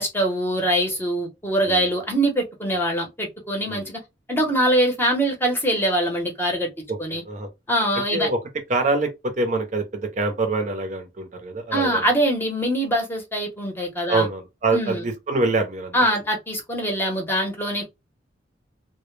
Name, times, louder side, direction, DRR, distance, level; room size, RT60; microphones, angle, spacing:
voice 1, 0.0-4.0 4.3-6.7 7.0-7.2 7.7-8.3 11.7-14.3 14.7-15.0 15.9-17.9, right 1 dB, 10° left, 0.7 m, -23 dB
voice 2, 6.9-7.5 8.1-8.4 8.7-12.1 14.1-16.0, right 3 dB, 40° right, 0.5 m, -25 dB
2.1 x 2.0 x 3.0 m
head